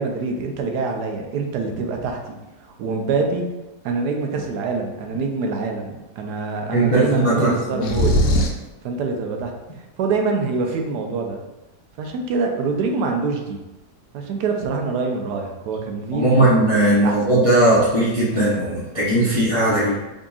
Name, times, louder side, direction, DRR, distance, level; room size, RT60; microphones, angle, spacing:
voice 1, 0.0-2.4 2.8-3.5 3.8-8.2 8.8-9.5 10.0-11.4 12.0-13.6 14.1-16.5 16.9-17.1, right 4 dB, 85° right, 3 dB, 1.2 m, -25 dB
voice 2, 6.7-7.9 16.1-20.0, right 1 dB, 50° left, -8 dB, 0.3 m, -18 dB
sound 1, 7.8-8.7, equal, 80° left, 1.1 m, -19 dB
5.0 x 2.8 x 2.3 m, 1.0 s
omnidirectional pair, 1.7 m